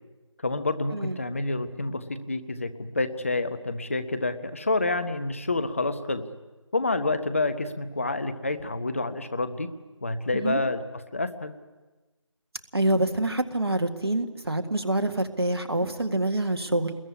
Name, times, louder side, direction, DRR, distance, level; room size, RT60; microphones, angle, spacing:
voice 1, 0.4-6.2 6.7-9.7 10.0-11.5, left 2 dB, 25° left, 10 dB, 1.0 m, -28 dB
voice 2, 12.7-16.9, right 1 dB, 50° right, 7 dB, 1.9 m, -26 dB
26.0 x 21.5 x 9.9 m, 1.2 s
figure-of-eight pair, 165°, 16 cm